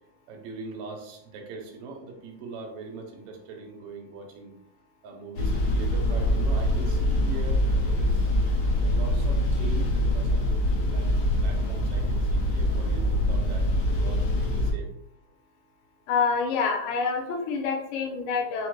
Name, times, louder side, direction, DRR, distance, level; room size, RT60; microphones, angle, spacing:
voice 1, 0.3-4.5 5.0-8.3 8.8-11.1 11.4-14.9, right 3 dB, 75° right, 1 dB, 1.3 m, -41 dB
sound 1, 5.3-14.7, left 1 dB, 65° left, 1.6 m, -24 dB
voice 2, 16.1-18.7, left 5 dB, 85° left, 2 dB, 2.4 m, -27 dB
5.2 x 2.1 x 4.6 m, 0.74 s
omnidirectional pair, 3.8 m